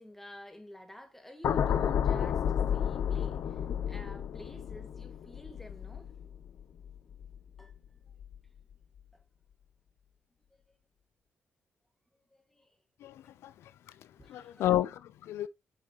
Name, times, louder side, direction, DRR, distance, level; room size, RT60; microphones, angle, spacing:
voice 1, 0.0-6.1 7.6-7.7 9.1-9.2 12.3-12.8 14.2-14.6, left 1 dB, 5° left, 1.9 m, -51 dB
sound 1, 1.4-7.7 8.1-8.4, left 8 dB, 70° left, 0.8 m, -32 dB
voice 2, 13.0-13.5 14.3-15.5, left 13 dB, 90° left, 0.4 m, -31 dB
8.1 x 5.7 x 3.0 m
cardioid pair, 90°, 4 cm